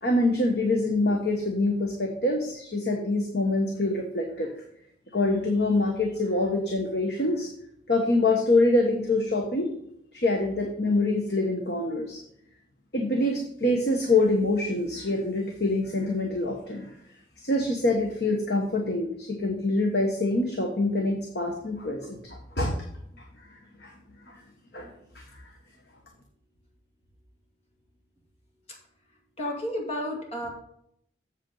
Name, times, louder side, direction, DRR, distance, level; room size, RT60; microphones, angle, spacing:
voice 1, 0.0-4.5 5.1-7.5 7.9-9.7 10.1-12.2 12.9-16.9 17.4-22.8 23.8-23.9 24.3-24.4 24.7-25.2, left 2 dB, 70° left, 1 dB, 1.3 m, -25 dB
voice 2, 29.4-30.5, equal, 35° left, 0 dB, 2.2 m, -31 dB
7.9 x 7.6 x 4.0 m, 0.71 s
head